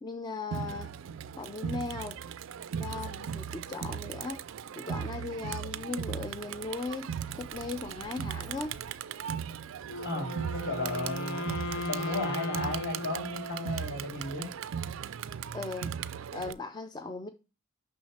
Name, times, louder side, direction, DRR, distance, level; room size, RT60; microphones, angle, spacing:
voice 1, 0.0-0.9 1.4-2.2 2.8-4.4 4.8-8.8 15.5-15.9 16.3-17.3, left 3 dB, 20° left, 0.4 m, -38 dB
Crowd, 0.5-16.5, right 8 dB, 65° right, 0.3 m, -38 dB
Wind instrument woodwind instrument, 9.8-14.1, left 1 dB, 85° left, 0.8 m, -37 dB
voice 2, 10.0-14.5, left 2 dB, 55° left, 3.3 m, -35 dB
6.2 x 5.6 x 4.2 m
head